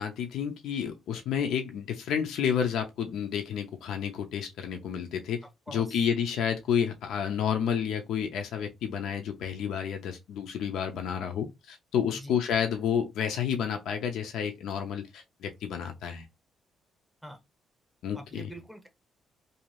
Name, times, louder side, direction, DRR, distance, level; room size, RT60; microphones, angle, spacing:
voice 1, 0.0-16.3 18.0-18.5, left 8 dB, 80° left, 0.4 m, -30 dB
voice 2, 5.7-6.0 12.1-12.4 17.2-17.4 18.1-18.9, right 1 dB, ahead, 0.7 m, -44 dB
2.6 x 2.3 x 3.0 m
cardioid pair, 90°, 0 cm